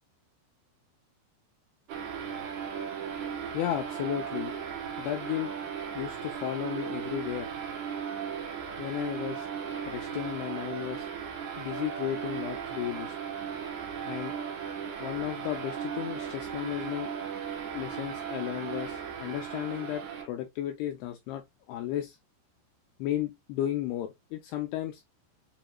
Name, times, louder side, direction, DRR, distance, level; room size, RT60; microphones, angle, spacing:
sound 1, 1.9-20.3, right 7 dB, 85° right, 1.7 m, -36 dB
voice 1, 3.5-4.6 5.0-5.5 5.9-7.5 8.8-9.5 9.9-11.1 11.6-13.2 14.0-14.3 15.0-17.1 17.7-22.2 23.0-25.0, left 13 dB, 85° left, 2.2 m, -34 dB
7.0 x 2.9 x 2.2 m
omnidirectional pair, 5.1 m